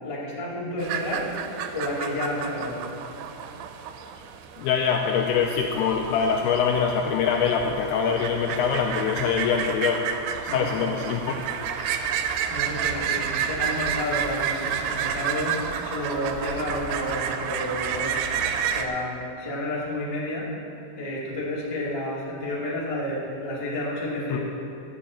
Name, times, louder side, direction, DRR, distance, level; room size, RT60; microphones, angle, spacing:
voice 1, 0.0-1.3 1.7-2.8 10.5-10.7 12.5-18.3 18.6-20.5 20.9-24.4, left 1 dB, 40° left, -6 dB, 0.4 m, -30 dB
sound 1, 0.8-18.9, right 8 dB, 90° right, 3.0 m, -30 dB
voice 2, 4.6-10.0 10.5-11.2 24.3-24.4, left 6 dB, 90° left, 2 dB, 2.3 m, -24 dB
12.5 x 5.9 x 8.4 m, 2.8 s
omnidirectional pair, 5.1 m